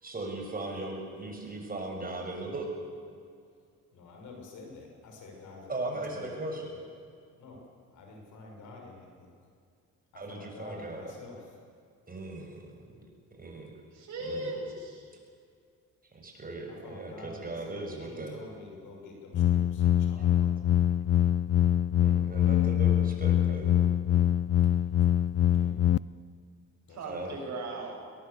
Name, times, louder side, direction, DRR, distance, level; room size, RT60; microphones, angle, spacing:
voice 1, 0.0-2.7 5.7-6.8 10.1-11.0 12.1-12.7 13.4-13.7 14.2-14.6 16.1-18.3 22.0-23.7 27.0-27.4, right 2 dB, 30° right, 1 dB, 6.7 m, -38 dB
voice 2, 3.9-6.3 7.4-7.6 7.9-9.3 10.1-11.5 16.7-20.5 25.4-25.8 26.9-27.3, left 3 dB, 75° left, 2 dB, 6.2 m, -48 dB
voice 3, 13.9-15.1 26.9-28.0, right 2 dB, 65° right, -1 dB, 7.7 m, -38 dB
sound 1, 19.3-26.0, left 11 dB, 50° left, 0.5 m, -24 dB
22.0 x 19.0 x 8.4 m, 2.2 s
cardioid pair, 90°, 30 cm